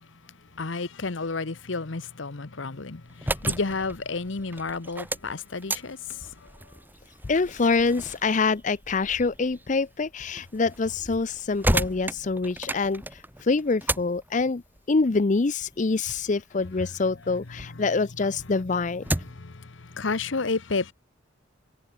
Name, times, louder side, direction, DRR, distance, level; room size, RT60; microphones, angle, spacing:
voice 1, 0.6-3.0 3.4-6.0 19.4-19.5 19.9-20.9, left 3 dB, 75° left, 1.0 m, -30 dB
sound 1, 3.0-17.7 18.1-19.5, right 1 dB, 10° right, 5.5 m, -34 dB
voice 2, 7.2-14.6 14.9-19.0, left 4 dB, 40° left, 0.5 m, -25 dB
head